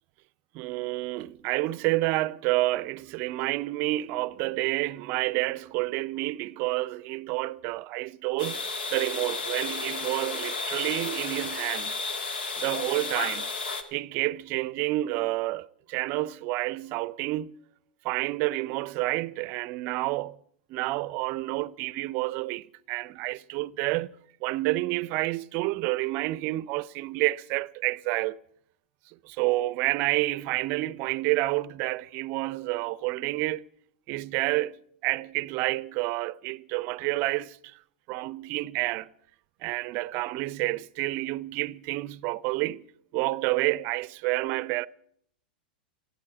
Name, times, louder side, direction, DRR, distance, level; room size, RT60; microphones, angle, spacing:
voice 1, 0.5-8.6 8.9-12.0 12.6-13.5 13.9-17.6 18.0-20.4 20.7-24.1 24.4-28.4 29.3-33.6 34.1-37.6 38.1-39.1 39.6-42.9 43.1-44.9, right 19 dB, 45° right, 0.5 m, -29 dB
sound 1, 8.4-13.8, left 4 dB, 80° left, 1.9 m, -33 dB
14.5 x 12.0 x 7.8 m
hypercardioid pair, 110°, 5 cm